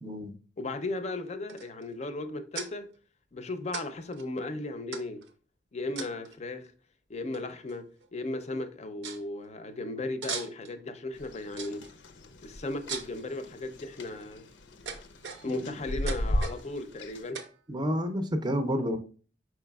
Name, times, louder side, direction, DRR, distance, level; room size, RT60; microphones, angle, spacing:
voice 1, 0.0-0.3 15.6-15.7 17.7-19.0, equal, 25° right, 0.5 m, -29 dB
voice 2, 0.6-2.9 3.3-5.2 5.7-6.7 7.1-7.9 8.1-11.8 12.4-14.5 15.4-17.4, left 2 dB, 40° left, 0.5 m, -36 dB
sound 1, 1.5-1.9 2.5-2.7 3.7-3.9 4.1-4.2 4.9-5.3 6.0-6.4 7.3-7.4 7.7-8.1 8.4-8.5 9.0-9.2 10.2-10.8 11.6-11.9 12.9-13.2 13.9-14.3 14.9-15.7 16.1-16.6 17.3-17.6, right 6 dB, 75° right, 0.6 m, -39 dB
sound 2, 11.2-17.3, equal, 85° left, 0.6 m, -37 dB
4.9 x 4.6 x 2.3 m
head